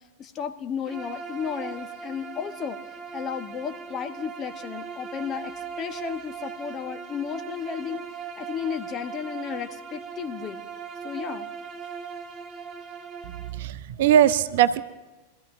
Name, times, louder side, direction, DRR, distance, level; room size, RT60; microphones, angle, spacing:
voice 1, 0.2-2.8 3.1-5.5 5.8-8.0 8.4-10.6 11.0-11.5, left 7 dB, 30° left, 7 dB, 1.0 m, -33 dB
Bowed string instrument, 0.8-13.6, right 6 dB, 20° right, 1.7 m, -39 dB
voice 2, 13.2-14.8, right 10 dB, 55° right, 14 dB, 0.6 m, -21 dB
24.5 x 14.5 x 2.6 m, 1.1 s
figure-of-eight pair, 90°, 0 cm